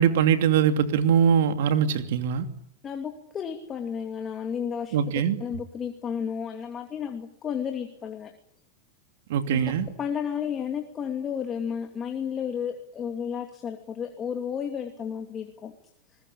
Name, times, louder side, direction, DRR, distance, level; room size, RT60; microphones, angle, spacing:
voice 1, 0.0-2.5 4.9-5.4 9.3-9.8, right 8 dB, 75° right, 8 dB, 2.9 m, -22 dB
voice 2, 2.8-5.0 5.4-8.3 9.5-9.6 10.0-15.7, left 7 dB, 25° left, 5 dB, 2.6 m, -32 dB
29.0 x 21.0 x 8.7 m, 0.69 s
supercardioid pair, 135°, 0 cm